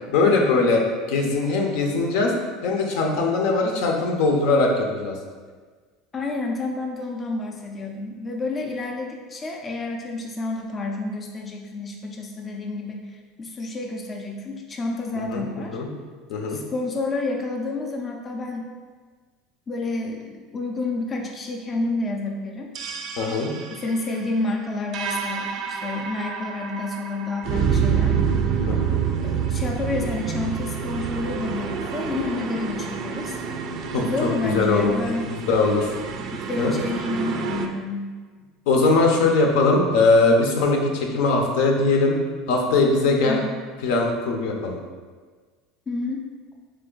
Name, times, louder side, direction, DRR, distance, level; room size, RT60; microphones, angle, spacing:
voice 1, 0.1-0.8 1.1-2.3 2.6-5.2 15.3-15.4 15.7-15.9 16.3-16.6 23.2-23.5 28.7-29.0 33.9-34.9 35.5-35.9 36.6-36.7 38.7-42.2 42.5-43.4 43.8-44.8, left 3 dB, 75° left, 1 dB, 0.7 m, -20 dB
voice 2, 6.1-15.8 16.5-18.7 19.7-22.7 23.7-28.2 29.2-33.4 34.0-35.4 36.1-38.1 43.2-43.6 45.9-46.3, left 2 dB, 25° left, 1 dB, 0.4 m, -29 dB
sound 1, 22.8-37.7, right 6 dB, 50° right, 0.4 m, -28 dB
3.4 x 3.2 x 3.8 m, 1.5 s
supercardioid pair, 130°, 0 cm